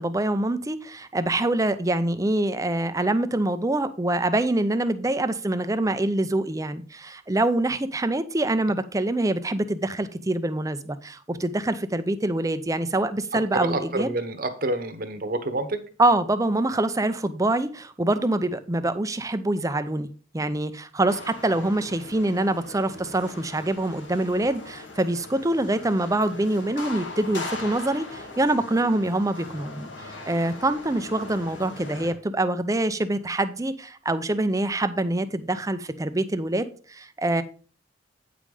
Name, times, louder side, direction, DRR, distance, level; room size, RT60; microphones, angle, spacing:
voice 1, 0.0-14.1 16.0-20.1 20.3-37.4, right 2 dB, 20° right, 11 dB, 0.6 m, -25 dB
voice 2, 13.5-15.8, right 2 dB, 50° right, 9 dB, 1.1 m, -28 dB
sound 1, 21.1-32.1, left 3 dB, 75° left, 1.8 m, -40 dB
8.8 x 5.4 x 4.9 m, 0.39 s
head